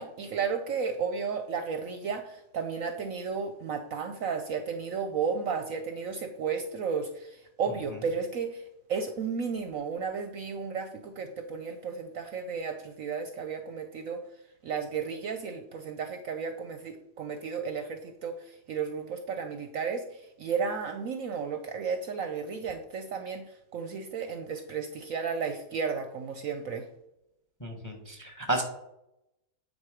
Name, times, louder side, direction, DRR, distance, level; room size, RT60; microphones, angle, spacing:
voice 1, 0.0-8.6 8.9-14.2 14.6-26.8, right 5 dB, 65° right, 7 dB, 0.9 m, -33 dB
voice 2, 27.6-28.6, right 2 dB, 15° left, 4 dB, 1.0 m, -32 dB
8.9 x 4.1 x 4.9 m, 0.83 s
omnidirectional pair, 1.8 m